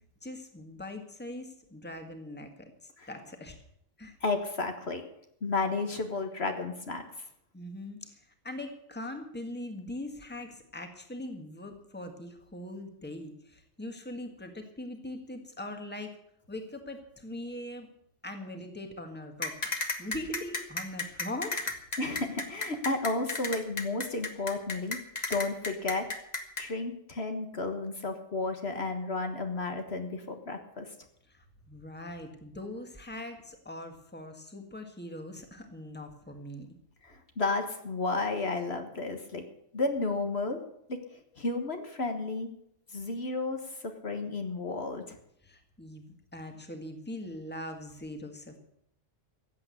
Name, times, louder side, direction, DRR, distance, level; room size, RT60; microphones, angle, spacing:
voice 1, 0.2-3.6 4.0-4.2 7.5-16.1 16.5-17.9 18.2-21.7 31.3-36.7 45.4-46.0 46.3-48.6, left 1 dB, 10° left, 5 dB, 1.7 m, -41 dB
voice 2, 4.2-5.1 5.4-7.0 22.0-25.0 25.3-26.1 26.6-30.8 37.0-39.4 39.7-40.6 40.9-41.0 41.4-42.5 42.9-45.2, left 3 dB, 55° left, 5 dB, 1.7 m, -32 dB
sound 1, 19.4-26.6, left 3 dB, 35° left, 1.6 m, -33 dB
14.5 x 8.6 x 8.3 m, 0.74 s
omnidirectional pair, 1.3 m